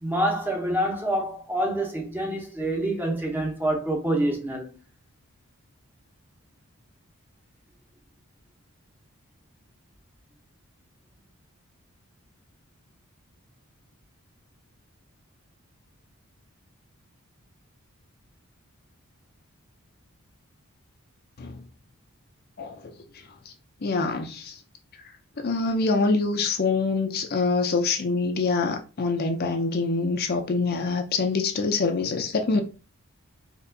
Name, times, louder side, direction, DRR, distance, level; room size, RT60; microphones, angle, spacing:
voice 1, 0.0-4.7, right 1 dB, 10° right, 0.7 m, -26 dB
voice 2, 23.8-24.4 25.4-32.6, left 3 dB, 45° left, 0.5 m, -25 dB
4.2 x 2.9 x 2.6 m
head